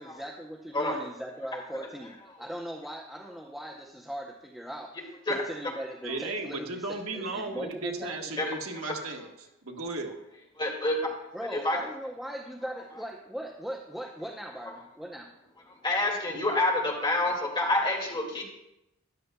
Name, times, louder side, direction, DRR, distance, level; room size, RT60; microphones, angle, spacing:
voice 1, 0.0-5.0 5.3-6.8 7.1-8.5 11.3-15.3, equal, ahead, -1 dB, 0.7 m, -39 dB
voice 2, 6.0-9.3 9.6-10.2, right 3 dB, 80° right, 2 dB, 1.3 m, -35 dB
voice 3, 10.6-11.0 11.4-11.8 15.8-18.4, left 2 dB, 25° left, -1 dB, 2.1 m, -27 dB
13.0 x 11.0 x 2.3 m, 0.87 s
head